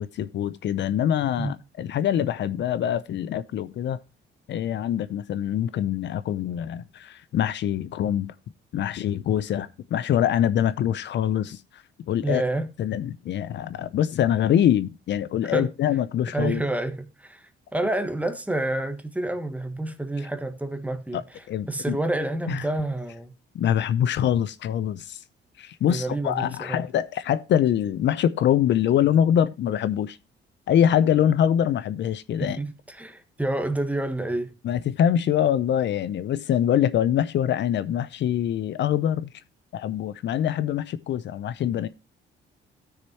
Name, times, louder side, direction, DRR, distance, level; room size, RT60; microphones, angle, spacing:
voice 1, 0.0-4.0 4.5-8.3 8.7-11.8 12.1-12.4 12.8-16.6 21.1-21.2 21.5-22.0 22.5-22.7 23.5-25.2 25.6-30.2 30.7-32.6 34.6-39.3 39.7-41.9, left 10 dB, 65° left, 0.6 m, -24 dB
voice 2, 12.2-12.7 15.4-15.7 16.3-23.3 25.9-26.8 32.4-34.5, right 2 dB, 5° right, 1.4 m, -29 dB
16.0 x 6.6 x 2.9 m
cardioid pair, 90°, 20 cm